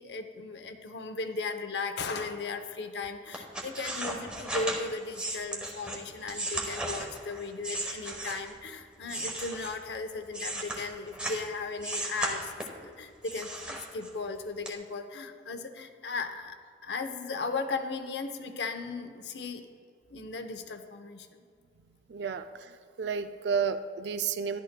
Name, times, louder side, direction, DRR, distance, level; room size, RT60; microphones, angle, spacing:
voice 1, 0.0-16.6 16.8-19.7 20.1-21.4, left 4 dB, 75° left, 7 dB, 0.7 m, -36 dB
sound 1, 3.3-8.6 9.0-11.5 11.8-12.8 13.2-14.3 14.6-14.7, right 1 dB, 5° right, 1.1 m, -36 dB
voice 2, 22.1-24.6, right 6 dB, 75° right, 9 dB, 0.4 m, -32 dB
13.5 x 11.5 x 2.2 m, 2.1 s
head